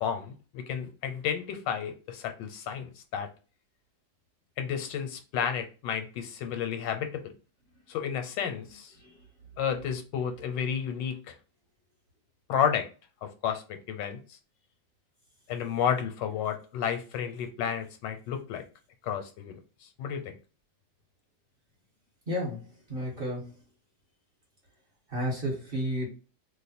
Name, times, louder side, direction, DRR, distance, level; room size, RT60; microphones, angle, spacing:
voice 1, 0.0-3.3 4.6-7.2 7.9-8.9 9.6-11.3 12.5-12.9 13.2-14.2 15.5-18.6 19.0-19.6 20.0-20.3, left 8 dB, 85° left, 1.3 m, -31 dB
voice 2, 22.3-23.6 25.1-26.1, equal, 35° right, 1.2 m, -32 dB
2.9 x 2.1 x 4.1 m
omnidirectional pair, 1.9 m